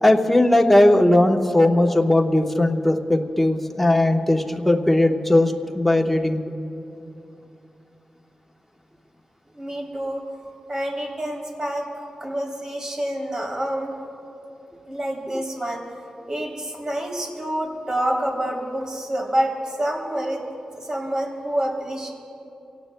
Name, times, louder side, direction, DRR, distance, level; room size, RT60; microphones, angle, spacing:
voice 1, 0.0-6.4, left 1 dB, 5° left, 2 dB, 1.2 m, -18 dB
voice 2, 9.5-10.2 10.7-11.8 12.2-13.9 14.9-15.8 16.3-20.4 20.7-22.1, right 1 dB, 30° right, -1 dB, 3.2 m, -27 dB
26.0 x 17.5 x 2.3 m, 2.8 s
cardioid pair, 80°, 2 cm